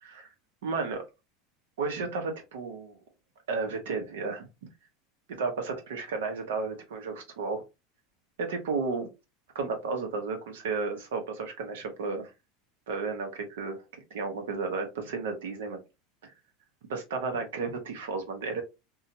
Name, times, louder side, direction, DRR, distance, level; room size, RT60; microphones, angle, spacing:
voice 1, 0.6-1.1 1.8-3.0 3.5-4.7 5.3-7.6 8.4-9.1 9.5-12.3 12.9-13.8 14.1-15.8 16.2-16.3 16.9-18.6, right 4 dB, 85° right, 0.9 m, -33 dB
2.8 x 2.4 x 2.7 m
supercardioid pair, 115°, 0 cm